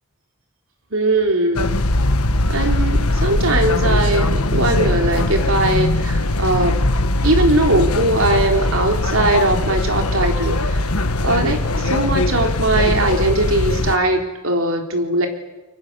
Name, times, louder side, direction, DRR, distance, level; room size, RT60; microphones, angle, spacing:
voice 1, 0.9-1.8 2.5-6.7 7.2-10.8 11.2-15.3, right 2 dB, 65° right, 3 dB, 4.0 m, -20 dB
sound 1, 1.5-14.0, left 2 dB, 90° left, 1.5 m, -20 dB
30.0 x 23.5 x 7.1 m, 1.1 s
head